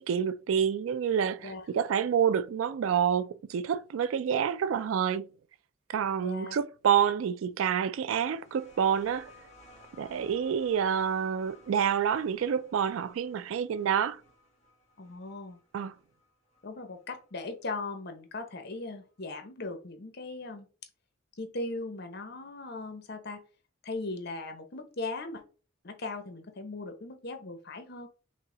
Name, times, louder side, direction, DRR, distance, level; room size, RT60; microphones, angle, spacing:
voice 1, 0.0-5.3 5.9-9.3 10.0-14.2 15.7-15.9, right 8 dB, 90° right, 0.3 m, -28 dB
voice 2, 6.2-6.6 15.0-15.6 16.6-20.7 21.4-23.4 23.8-25.4 25.8-28.1, left 2 dB, 55° left, 0.8 m, -38 dB
sound 1, 8.1-17.4 18.5-18.6, left 1 dB, 35° left, 1.7 m, -58 dB
5.4 x 2.1 x 3.8 m
head